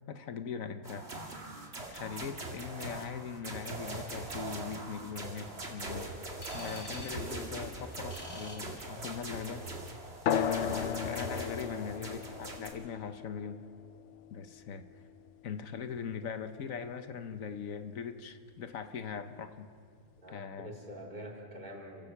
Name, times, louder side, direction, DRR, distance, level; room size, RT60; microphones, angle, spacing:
voice 1, 0.1-1.1 1.9-9.7 10.4-13.6 14.3-14.8 15.4-19.7 20.3-20.7, left 6 dB, 80° left, 9 dB, 1.4 m, -41 dB
sound 1, 0.8-12.7, right 2 dB, 50° right, 2.5 m, -41 dB
sound 2, 6.4-9.5, left 2 dB, 40° left, 2.1 m, -50 dB
sound 3, 10.3-15.3, left 9 dB, 65° left, 0.9 m, -36 dB
voice 2, 20.2-22.1, equal, 35° right, -1 dB, 3.5 m, -45 dB
29.5 x 15.5 x 6.0 m, 2.2 s
omnidirectional pair, 1.4 m